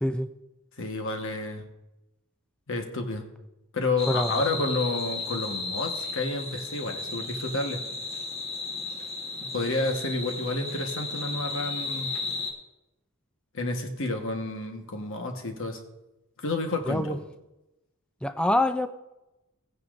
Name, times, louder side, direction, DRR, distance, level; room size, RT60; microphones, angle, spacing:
voice 1, 0.8-1.6 2.7-3.2 3.7-7.8 9.4-12.2 13.5-15.8 16.4-17.2, left 2 dB, 60° left, 1.3 m, -30 dB
sound 1, 4.0-12.5, left 3 dB, 30° left, 1.3 m, -34 dB
voice 2, 4.1-4.4 16.9-17.2 18.2-18.9, left 1 dB, 5° left, 0.4 m, -25 dB
17.5 x 9.6 x 2.5 m
head